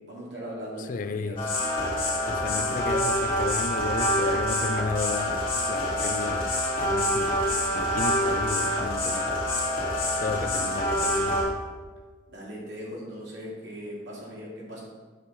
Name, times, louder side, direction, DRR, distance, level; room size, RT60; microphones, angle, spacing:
voice 1, 0.1-1.6 12.3-14.8, equal, 70° right, -4 dB, 2.4 m, -39 dB
voice 2, 0.9-1.5 2.3-5.4 5.7-6.5 6.8-7.4 7.7-9.3 10.2-11.5, left 4 dB, 45° left, 11 dB, 0.4 m, -33 dB
sound 1, 1.4-11.4, equal, 30° left, 2.5 m, -26 dB
8.2 x 6.4 x 4.0 m, 1.4 s
head